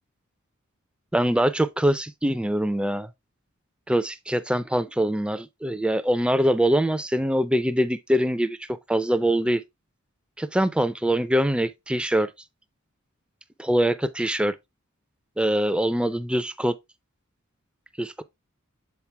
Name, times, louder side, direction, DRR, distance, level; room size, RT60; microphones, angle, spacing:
voice 1, 1.1-3.1 3.9-8.6 8.9-9.6 10.4-12.3 13.6-14.5 15.4-16.7 18.0-18.2, right 1 dB, 5° right, 0.4 m, -23 dB
7.3 x 3.9 x 3.3 m
head